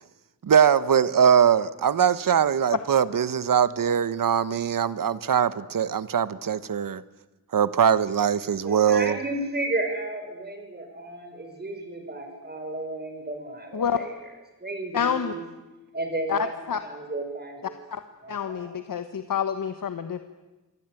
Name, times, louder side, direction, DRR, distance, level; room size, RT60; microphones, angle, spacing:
voice 1, 0.4-7.0 7.5-9.2, right 8 dB, 75° right, 1.1 m, -21 dB
voice 2, 8.6-14.1 14.6-15.4 15.9-16.5 16.8-17.7 18.2-18.7, right 2 dB, 30° right, 5.4 m, -33 dB
voice 3, 14.9-15.4 16.3-16.8 17.6-18.0 18.3-20.2, left 7 dB, 75° left, 1.3 m, -28 dB
27.5 x 22.5 x 9.1 m
wide cardioid pair, 140°, 33 cm